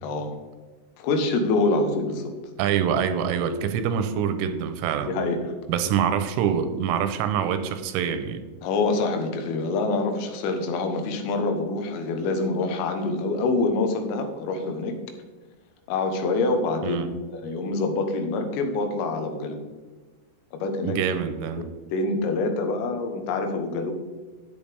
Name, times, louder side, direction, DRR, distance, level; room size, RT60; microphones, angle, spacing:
voice 1, 0.0-0.4 1.0-2.3 5.0-5.5 8.6-15.0 15.9-17.0 17.3-19.6 20.6-21.0 21.6-23.9, left 3 dB, 85° left, 5 dB, 3.8 m, -26 dB
voice 2, 2.6-5.1 5.7-8.4 16.8-17.1 20.8-21.7, right 8 dB, 85° right, 9 dB, 3.2 m, -25 dB
12.5 x 8.7 x 3.4 m, 1.3 s
omnidirectional pair, 5.8 m